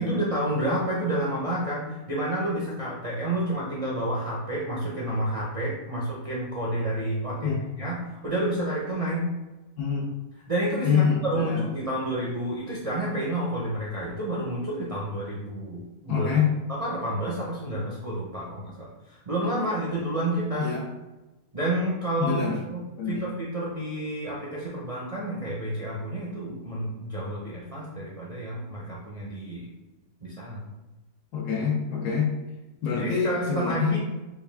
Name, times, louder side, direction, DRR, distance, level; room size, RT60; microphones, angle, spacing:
voice 1, 0.0-9.3 10.5-16.3 16.8-20.7 21.5-22.4 22.7-22.8 23.1-29.7 30.2-30.7 32.9-34.0, right 1 dB, 60° right, -6 dB, 0.3 m, -29 dB
voice 2, 10.8-11.6 16.1-16.5 20.6-20.8 22.2-22.6 23.0-23.2 31.3-32.3 32.8-34.0, left 6 dB, 85° left, -3 dB, 1.3 m, -25 dB
4.6 x 2.4 x 3.3 m, 1.1 s
omnidirectional pair, 1.6 m